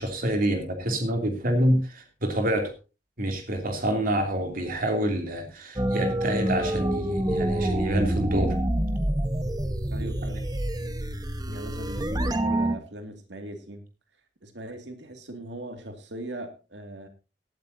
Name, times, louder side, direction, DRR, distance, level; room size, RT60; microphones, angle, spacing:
voice 1, 0.0-2.7 3.2-8.6, right 1 dB, 55° right, 4 dB, 2.9 m, -27 dB
sound 1, 5.8-12.8, right 1 dB, 25° right, 1.2 m, -27 dB
voice 2, 9.9-10.5 11.5-13.8 14.4-17.1, right 1 dB, 85° right, 5 dB, 2.4 m, -39 dB
17.5 x 12.5 x 2.8 m, 0.31 s
head